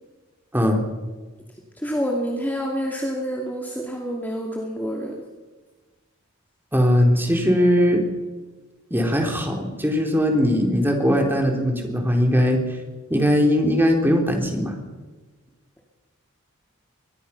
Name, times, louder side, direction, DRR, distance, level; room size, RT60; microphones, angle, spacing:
voice 1, 0.5-0.8 6.7-8.0 8.9-12.6 13.1-14.8, equal, 10° right, 2 dB, 3.6 m, -20 dB
voice 2, 1.8-5.1, equal, 10° left, 0 dB, 2.4 m, -27 dB
23.5 x 20.0 x 5.9 m, 1.3 s
head